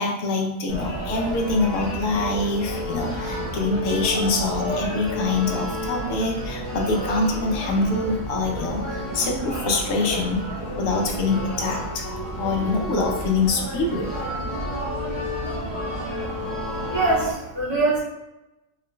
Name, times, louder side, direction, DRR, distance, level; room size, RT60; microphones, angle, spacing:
voice 1, 0.0-10.4 10.7-12.1 12.3-14.1, left 3 dB, 80° left, 1 dB, 1.0 m, -25 dB
sound 1, 0.7-17.3, equal, 5° right, 1.2 m, -30 dB
voice 2, 16.9-18.0, right 3 dB, 45° right, -10 dB, 1.8 m, -22 dB
3.7 x 3.6 x 2.2 m, 0.95 s
omnidirectional pair, 1.4 m